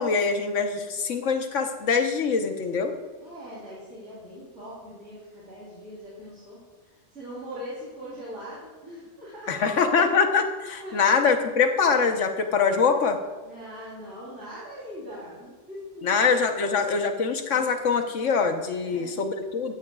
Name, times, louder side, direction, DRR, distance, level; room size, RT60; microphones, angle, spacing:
voice 1, 0.0-2.9 9.5-13.2 16.0-19.7, left 5 dB, 85° left, 5 dB, 1.4 m, -23 dB
voice 2, 3.2-9.7 10.8-11.0 13.4-16.3 16.5-16.9 18.8-19.2, equal, 75° right, -9 dB, 3.8 m, -41 dB
14.0 x 13.0 x 2.4 m, 1.2 s
omnidirectional pair, 1.2 m